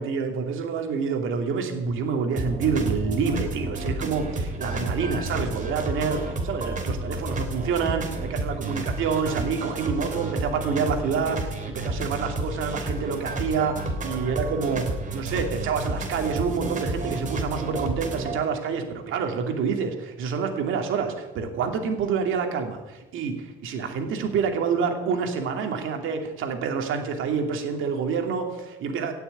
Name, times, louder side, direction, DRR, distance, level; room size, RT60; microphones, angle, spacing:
voice 1, 0.0-29.1, right 5 dB, 85° right, 4 dB, 2.6 m, -27 dB
sound 1, 2.4-18.4, right 2 dB, 40° right, 3.2 m, -31 dB
16.5 x 6.9 x 9.0 m, 1.1 s
cardioid pair, 90°, 20 cm